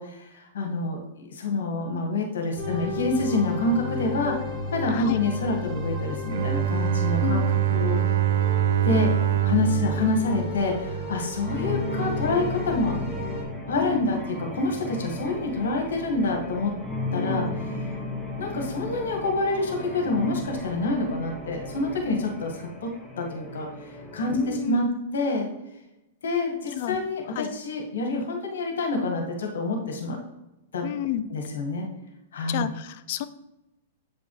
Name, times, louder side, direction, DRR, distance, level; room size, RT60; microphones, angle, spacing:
voice 1, 0.0-4.3 4.7-7.4 7.7-8.0 8.8-9.1 9.4-12.9 13.7-16.7 17.1-17.8 18.4-22.9 23.2-23.7 24.1-24.9 25.1-25.5 26.2-30.2 30.7-30.9 31.3-31.8 32.3-32.7, left 2 dB, 90° left, 1 dB, 1.6 m, -27 dB
sound 1, 2.6-13.4, left 1 dB, 15° right, 1.6 m, -33 dB
Bowed string instrument, 6.3-11.3, right 11 dB, 75° right, 0.3 m, -24 dB
sound 2, 11.4-24.7, left 2 dB, 5° left, 0.8 m, -35 dB
voice 2, 17.1-17.4 24.3-24.8 26.8-27.0 27.4-27.5 30.8-31.2 32.5-33.3, left 12 dB, 50° left, 12 dB, 0.4 m, -30 dB
8.1 x 5.2 x 3.2 m, 0.93 s
hypercardioid pair, 150°, 0 cm